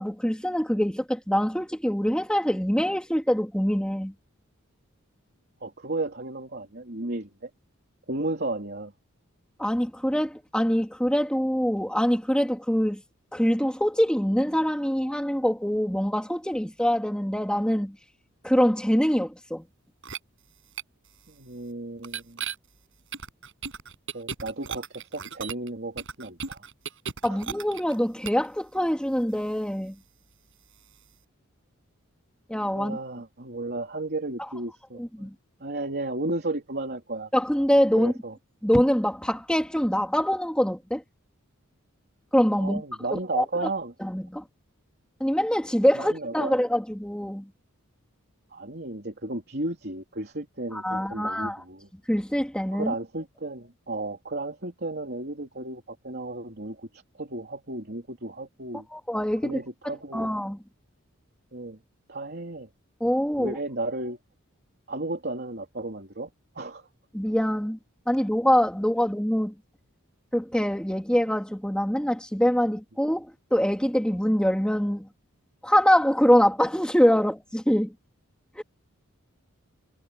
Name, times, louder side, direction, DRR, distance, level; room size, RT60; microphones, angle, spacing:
voice 1, 0.0-4.1 9.6-13.0 13.3-17.9 18.4-19.6 27.2-29.9 32.5-33.0 35.0-35.3 37.3-38.1 38.6-41.0 42.3-42.8 43.1-43.4 44.0-44.4 45.2-47.5 50.7-51.6 52.1-52.9 58.9-59.6 60.1-60.6 63.0-63.6 67.1-67.8 68.1-69.5 70.3-75.1 75.6-77.9 78.6-78.7, equal, 5° left, 3.2 m, -24 dB
voice 2, 5.6-7.5 8.1-8.9 21.3-22.4 24.1-26.6 27.3-27.4 32.8-35.3 35.6-37.3 38.0-38.4 42.6-43.9 46.0-46.6 48.5-51.9 52.7-58.9 59.4-60.3 61.5-61.8 62.1-62.7 63.4-64.2 64.9-66.3 66.6-66.9, right 2 dB, 50° right, 3.5 m, -34 dB
sound 1, 20.0-20.2 20.8-20.9 22.0-22.5 23.1-25.7 26.0-28.0 28.2-28.5, right 6 dB, 65° right, 6.8 m, -35 dB
head